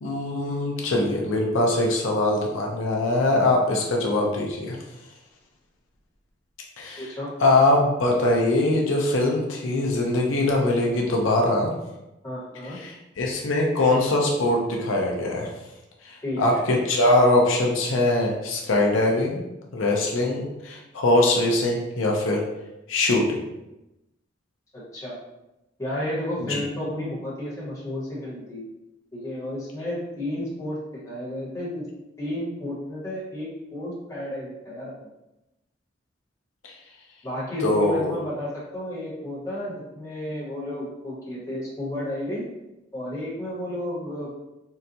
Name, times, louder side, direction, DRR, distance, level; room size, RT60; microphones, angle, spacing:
voice 1, 0.0-4.8 6.8-7.1 7.4-11.7 12.7-15.5 16.0-19.4 19.7-22.4 22.9-23.4 26.4-26.6 37.6-38.1, left 2 dB, 85° left, -1 dB, 0.6 m, -22 dB
voice 2, 7.0-7.3 12.2-12.8 16.2-16.6 24.9-25.2 25.8-28.6 29.1-30.8 31.0-31.9 32.2-35.1 37.2-42.5 42.9-44.3, left 1 dB, 15° left, -7 dB, 1.0 m, -32 dB
3.9 x 2.2 x 2.7 m, 0.95 s
head